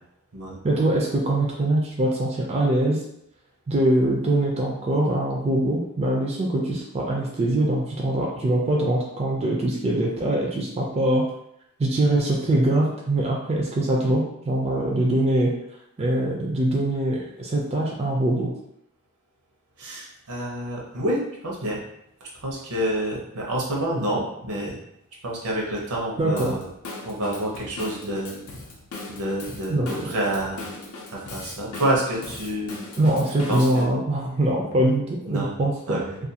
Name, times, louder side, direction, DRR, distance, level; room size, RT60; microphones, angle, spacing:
voice 1, 0.6-3.0 3.7-11.2 11.8-15.5 16.0-18.5 26.2-26.5 29.7-29.9 33.0-36.0, right 1 dB, 30° right, -2 dB, 0.4 m, -23 dB
voice 2, 19.8-21.8 22.2-24.8 25.2-26.7 27.0-28.4 29.1-30.6 31.1-32.7 33.5-33.9 34.6-34.7 35.3-35.5 35.9-36.2, right 1 dB, 85° right, -3 dB, 0.8 m, -28 dB
Drum kit / Drum, 26.4-33.9, left 2 dB, 75° left, 0.5 m, -39 dB
2.5 x 2.3 x 2.7 m, 0.78 s
head